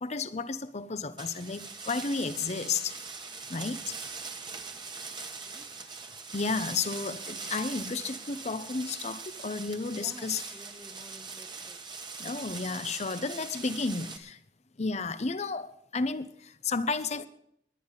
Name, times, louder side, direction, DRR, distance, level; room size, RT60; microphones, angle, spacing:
voice 1, 0.0-3.0 3.5-4.0 6.3-10.4 12.2-14.4 14.8-17.3, left 4 dB, 40° left, 0.7 m, -32 dB
sound 1, 1.2-14.2, right 4 dB, 25° right, 1.3 m, -41 dB
voice 2, 9.9-11.8 13.9-14.0, equal, ahead, 1.4 m, -53 dB
21.0 x 10.0 x 4.1 m
head